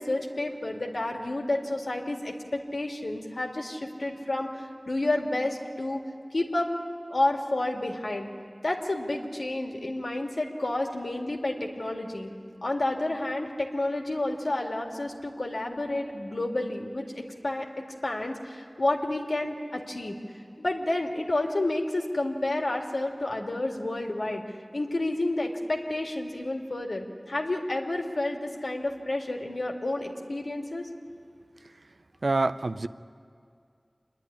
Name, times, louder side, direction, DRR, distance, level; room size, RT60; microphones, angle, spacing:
voice 1, 0.0-6.0 6.3-6.7 7.1-8.3 8.6-12.3 12.6-17.7 18.0-20.1 20.6-24.4 24.7-30.9, left 2 dB, 80° left, 1 dB, 2.0 m, -30 dB
voice 2, 32.2-32.9, right 2 dB, 80° right, 12 dB, 0.5 m, -26 dB
26.5 x 10.5 x 9.9 m, 2.3 s
wide cardioid pair, 40°, 0 cm